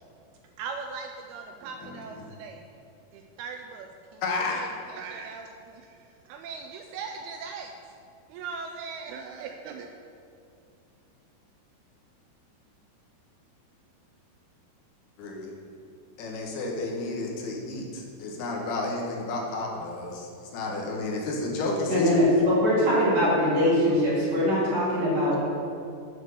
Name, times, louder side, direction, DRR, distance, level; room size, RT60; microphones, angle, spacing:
voice 1, 0.6-2.7 3.1-7.7 8.3-9.9, right 5 dB, 80° right, 4 dB, 2.3 m, -40 dB
voice 2, 1.8-2.2 4.2-4.6 15.2-15.5 16.2-22.2, left 2 dB, 75° left, -1 dB, 3.0 m, -31 dB
voice 3, 21.9-25.4, equal, 45° right, -8 dB, 3.2 m, -22 dB
8.0 x 6.5 x 6.3 m, 2.4 s
omnidirectional pair, 4.8 m